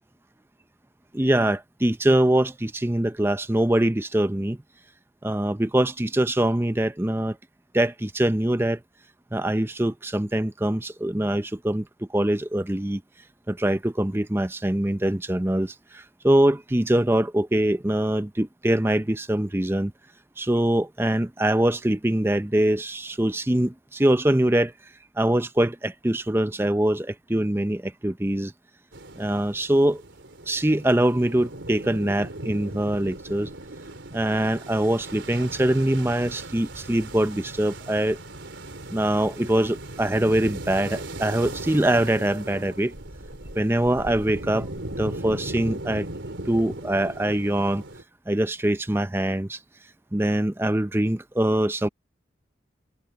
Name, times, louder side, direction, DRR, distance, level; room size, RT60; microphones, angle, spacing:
voice 1, 1.1-4.6 5.2-7.4 7.7-8.8 9.3-13.0 13.5-19.9 20.4-24.7 25.2-28.5 29.2-30.0 30.5-33.5 34.1-38.2 38.9-42.9 43.6-44.7 45.0-46.1 46.5-47.8 48.3-49.6 50.1-51.9, right 1 dB, 10° right, 0.6 m, -23 dB
sound 1, 28.9-48.0, right 1 dB, 75° right, 3.5 m, -38 dB
head